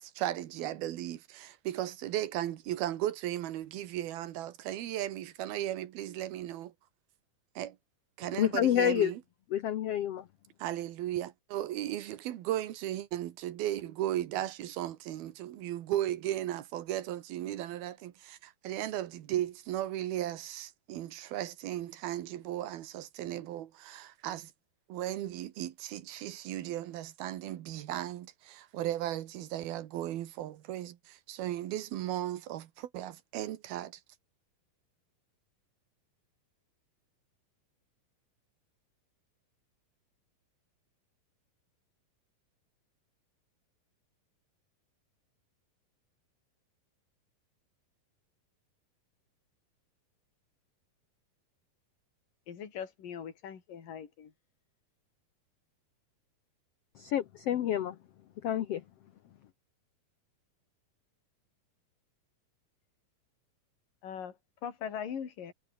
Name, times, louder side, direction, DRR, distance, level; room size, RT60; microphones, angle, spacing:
voice 1, 0.0-6.7 7.6-7.8 8.2-9.2 10.6-24.5 24.9-34.0, right 13 dB, 85° right, 3.3 m, -36 dB
voice 2, 8.3-9.1 9.5-10.3 56.9-58.0 58.4-58.8, left 11 dB, 85° left, 1.3 m, -28 dB
voice 3, 52.5-54.3 64.0-65.5, left 8 dB, 65° left, 4.9 m, -41 dB
omnidirectional pair, 4.2 m